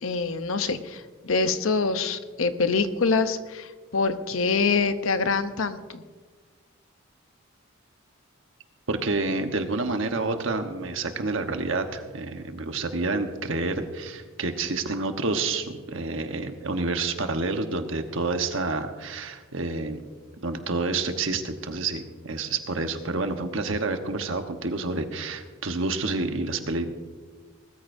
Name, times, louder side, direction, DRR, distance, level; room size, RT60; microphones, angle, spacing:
voice 1, 0.0-6.0, left 4 dB, 80° left, 10 dB, 0.8 m, -25 dB
voice 2, 8.9-20.0 20.4-26.9, right 3 dB, 70° right, 6 dB, 1.1 m, -29 dB
20.0 x 14.0 x 2.7 m, 1.4 s
head